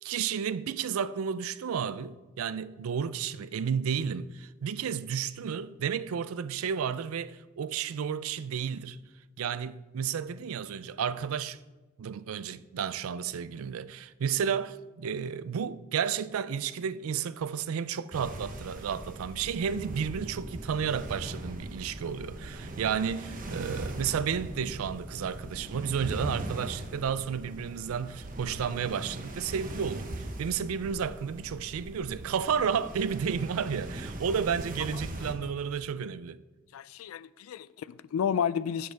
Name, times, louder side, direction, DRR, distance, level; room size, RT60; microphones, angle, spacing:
voice 1, 0.0-9.0 9.4-11.6 12.0-36.4, right 7 dB, 90° right, 0.4 m, -32 dB
sound 1, 18.1-35.3, right 1 dB, 40° right, 1.0 m, -40 dB
voice 2, 36.7-38.9, left 7 dB, 80° left, 0.3 m, -31 dB
9.4 x 7.7 x 3.4 m
head